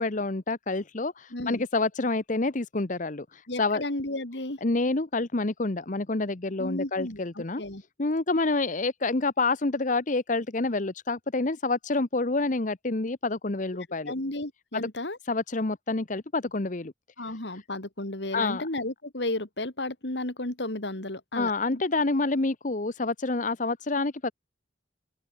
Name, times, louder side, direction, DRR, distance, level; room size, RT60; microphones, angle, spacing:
voice 1, 0.0-3.8 4.6-7.6 8.0-14.1 15.3-16.9 18.3-18.7 21.3-24.3, left 3 dB, 45° left, 1.0 m, -28 dB
voice 2, 1.3-1.6 3.5-4.6 6.6-7.8 14.1-15.2 17.2-21.8, left 1 dB, 70° left, 3.1 m, -33 dB
head